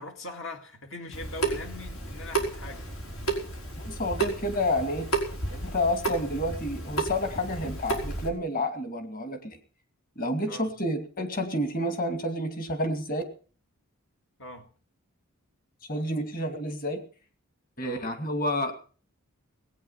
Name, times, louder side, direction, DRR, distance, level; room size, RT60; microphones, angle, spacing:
voice 1, 0.0-2.8 10.5-10.7 14.4-14.7 17.8-18.1, left 2 dB, 65° left, 2.1 m, -41 dB
Water tap faucet / Sink (filling or washing) / Drip, 1.1-8.3, right 3 dB, 85° left, 5.1 m, -32 dB
voice 2, 3.8-5.1 5.5-9.6 10.2-13.2 15.9-17.0 17.8-18.9, left 1 dB, 40° left, 2.3 m, -29 dB
20.5 x 9.3 x 5.7 m
head